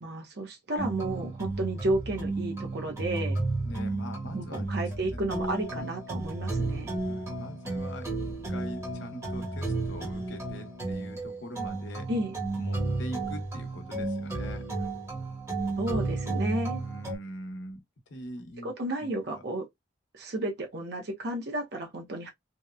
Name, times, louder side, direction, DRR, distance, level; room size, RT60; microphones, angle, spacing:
voice 1, 0.0-3.4 4.3-6.9 12.1-12.4 15.8-16.8 18.6-19.6 20.1-22.3, right 1 dB, 55° right, 0.6 m, -32 dB
sound 1, 0.8-17.2, right 2 dB, 15° right, 0.8 m, -33 dB
voice 2, 3.6-5.2 7.0-12.1 12.6-14.9 16.8-17.8 18.1-18.7 19.0-19.4, left 1 dB, 70° left, 0.8 m, -43 dB
2.8 x 2.1 x 2.3 m
head